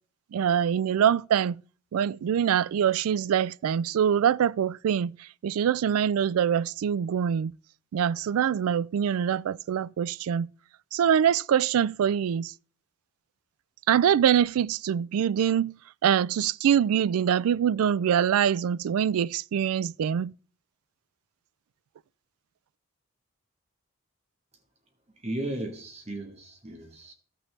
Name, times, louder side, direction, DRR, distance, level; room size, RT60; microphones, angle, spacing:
voice 1, 0.3-1.6 1.9-5.1 5.4-7.5 7.9-10.5 10.9-12.5 13.9-15.7 16.0-20.3, right 8 dB, 85° right, 0.3 m, -24 dB
voice 2, 25.2-27.1, right 1 dB, 30° right, 1.2 m, -35 dB
14.5 x 6.0 x 3.2 m
head